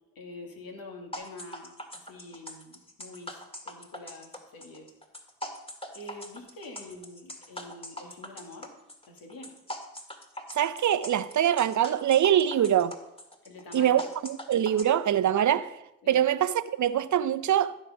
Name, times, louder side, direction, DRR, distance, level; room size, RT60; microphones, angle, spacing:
voice 1, 0.2-4.9 5.9-8.7 9.1-9.6 13.4-14.0 16.0-16.2, left 2 dB, 65° left, 2.5 m, -46 dB
sound 1, 1.1-14.8, left 1 dB, 15° left, 2.1 m, -42 dB
voice 2, 10.6-13.0 13.7-15.8 16.1-17.8, right 10 dB, 50° right, 0.8 m, -24 dB
14.0 x 6.5 x 5.1 m
hypercardioid pair, 45°, 37 cm